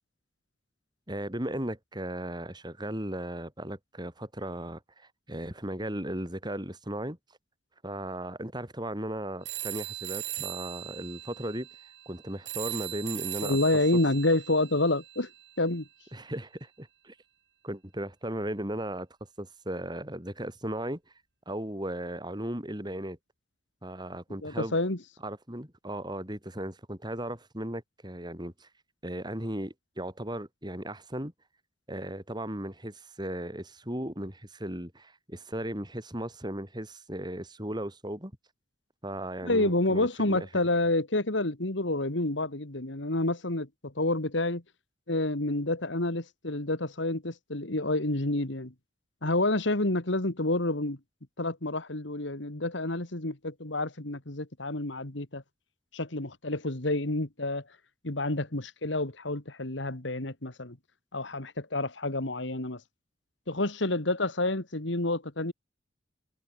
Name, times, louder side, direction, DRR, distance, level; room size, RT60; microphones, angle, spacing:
voice 1, 1.1-7.2 7.8-13.6 13.9-14.0 16.1-17.2 17.6-19.1 19.4-21.0 21.5-23.2 23.8-24.8 25.2-28.7 29.0-31.3 31.9-38.3 39.0-40.5, right 1 dB, 20° right, 5.5 m, -36 dB
sound 1, 9.4-15.6, right 15 dB, 60° right, 5.4 m, -39 dB
voice 2, 13.4-15.3 15.6-15.9 24.4-25.0 39.4-44.6 45.1-48.7 49.2-51.0 51.4-55.4 55.9-57.7 58.0-60.8 61.1-62.8 63.5-65.5, left 2 dB, 70° left, 2.4 m, -29 dB
head